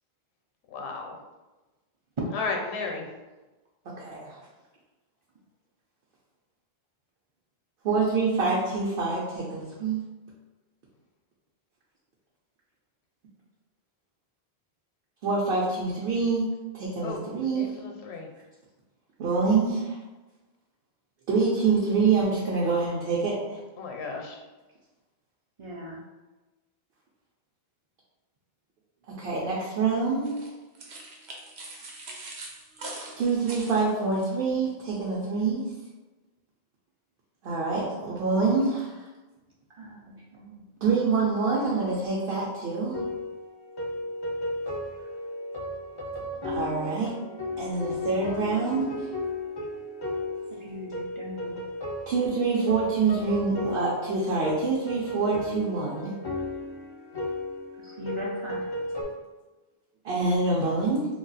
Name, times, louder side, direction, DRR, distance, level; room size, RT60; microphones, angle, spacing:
voice 1, 0.7-1.2 2.3-3.0 17.0-17.2 17.5-18.3 23.8-24.4, left 4 dB, 85° left, 2 dB, 0.8 m, -33 dB
voice 2, 4.0-4.4 7.8-10.0 15.2-16.5 16.7-17.7 19.2-20.0 21.3-23.6 29.2-30.4 33.2-35.7 37.4-39.0 40.8-43.0 46.4-47.2 47.6-49.1 52.1-56.1 60.0-61.1, right 4 dB, 65° right, -5 dB, 0.8 m, -26 dB
voice 3, 25.6-26.0 39.7-40.6 45.0-45.1 50.6-51.6 52.9-53.5 57.8-58.8, left 1 dB, 45° right, -4 dB, 0.4 m, -41 dB
sound 1, 30.2-34.3, right 2 dB, 85° right, 0.9 m, -42 dB
sound 2, 42.9-59.0, left 1 dB, 35° left, 0.4 m, -34 dB
2.4 x 2.3 x 3.9 m, 1.1 s
omnidirectional pair, 1.1 m